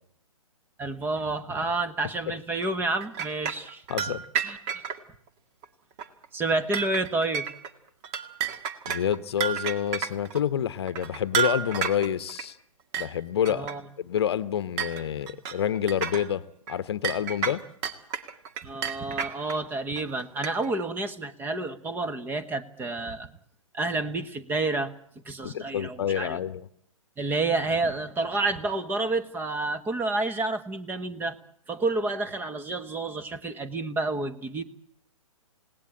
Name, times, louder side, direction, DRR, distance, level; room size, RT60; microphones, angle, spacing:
voice 1, 0.8-3.8 4.4-4.6 6.3-7.4 13.5-13.8 18.6-23.3 23.7-24.9 25.2-26.4 27.2-31.4 31.7-34.6, right 2 dB, 10° right, 9 dB, 1.4 m, -29 dB
sound 1, 2.6-5.0 5.6-5.7 6.0-6.3 6.5-7.7 8.0-10.4 10.9-12.4 12.9-13.1 13.4-13.7 14.2-14.3 14.8-16.3 16.7-16.8 17.0-19.6 20.0-20.8, right 8 dB, 25° right, 1.9 m, -31 dB
voice 2, 3.9-4.2 8.9-12.6 13.0-13.7 14.0-17.6 25.4-26.6, left 9 dB, 45° left, 15 dB, 1.1 m, -28 dB
29.5 x 18.5 x 8.9 m, 0.69 s
figure-of-eight pair, 125°, 18 cm